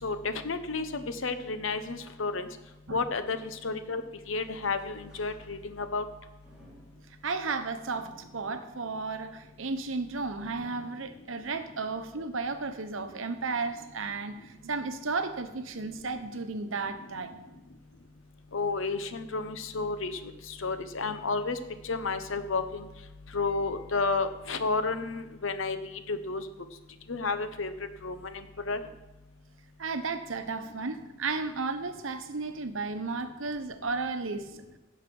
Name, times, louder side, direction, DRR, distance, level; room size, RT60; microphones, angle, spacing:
voice 1, 0.0-2.5 2.9-4.0 4.3-6.0 18.5-21.6 21.8-22.9 23.3-26.4 27.1-27.7 28.0-28.8, left 3 dB, 70° left, 10 dB, 1.0 m, -31 dB
sound 1, 4.3-5.9 6.4-11.7 12.1-12.2 13.1-13.2, right 1 dB, 5° right, 4.8 m, -57 dB
voice 2, 7.2-17.4 29.8-34.6, right 4 dB, 70° right, 9 dB, 1.0 m, -34 dB
16.5 x 6.5 x 5.4 m, 1.0 s
head